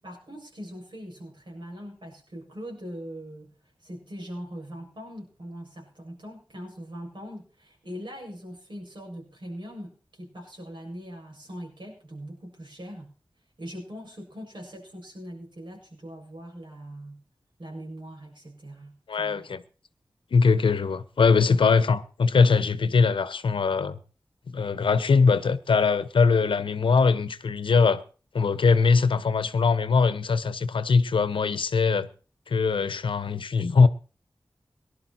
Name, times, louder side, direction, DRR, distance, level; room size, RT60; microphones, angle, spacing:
voice 1, 0.0-3.5 3.8-13.1 13.6-17.2 17.6-19.5 21.5-21.6, equal, 70° right, 7.2 m, -41 dB
voice 2, 19.1-19.6 20.3-24.0 24.5-28.0 28.3-32.1 32.5-33.9, left 4 dB, 90° left, 0.8 m, -21 dB
18.5 x 11.5 x 4.4 m
cardioid pair, 40°, 8 cm